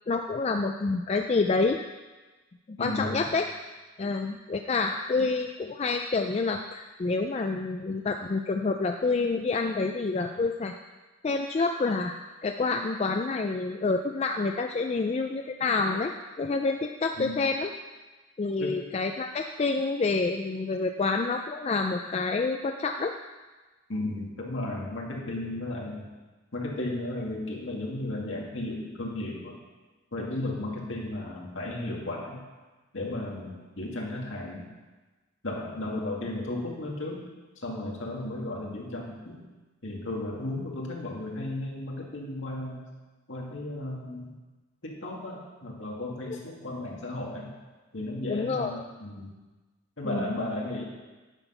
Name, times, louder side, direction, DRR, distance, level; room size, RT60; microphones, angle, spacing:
voice 1, 0.1-1.8 2.7-3.4 4.0-10.7 11.2-16.1 16.4-17.7 18.4-23.1 48.3-48.7 50.0-50.4, left 3 dB, 30° left, 4 dB, 0.3 m, -28 dB
voice 2, 2.8-3.3 17.2-17.3 18.6-18.8 23.9-26.1 26.5-29.6 30.1-32.4 32.9-34.7 35.4-37.3 37.6-39.4 39.8-42.8 43.3-44.3 44.8-47.5 47.9-49.3 50.0-50.8, left 1 dB, 65° left, -2 dB, 2.0 m, -34 dB
9.0 x 6.0 x 5.5 m, 1.2 s
head